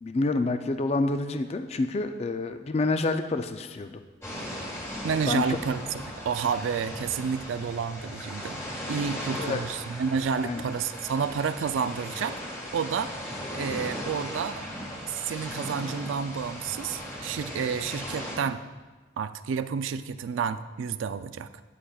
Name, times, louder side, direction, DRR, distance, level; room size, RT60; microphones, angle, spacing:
voice 1, 0.0-4.0 5.3-5.6 9.3-9.6 10.4-10.6, left 2 dB, 30° left, 7 dB, 0.3 m, -28 dB
sound 1, 4.2-18.4, equal, 15° left, 1.5 m, -37 dB
voice 2, 5.0-5.8 6.1-8.6 8.9-12.4 12.7-13.2 13.5-14.7 15.1-18.6 19.2-21.6, right 6 dB, 75° right, 12 dB, 0.3 m, -30 dB
12.5 x 8.7 x 2.3 m, 1.3 s
head